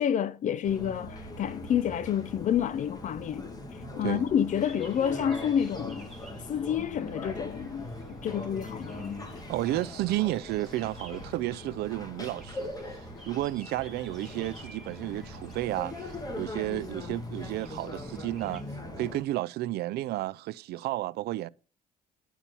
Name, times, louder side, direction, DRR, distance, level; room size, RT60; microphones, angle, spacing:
voice 1, 0.0-3.5 4.0-6.1 6.5-9.2, left 9 dB, 45° left, 0.5 m, -29 dB
sound 1, 0.6-19.2, left 1 dB, 20° left, 2.1 m, -41 dB
sound 2, 4.5-18.6, right 1 dB, ahead, 2.6 m, -55 dB
voice 2, 9.5-18.6 19.0-21.5, right 16 dB, 70° right, 0.5 m, -32 dB
10.0 x 4.4 x 6.9 m
cardioid pair, 110°, 17 cm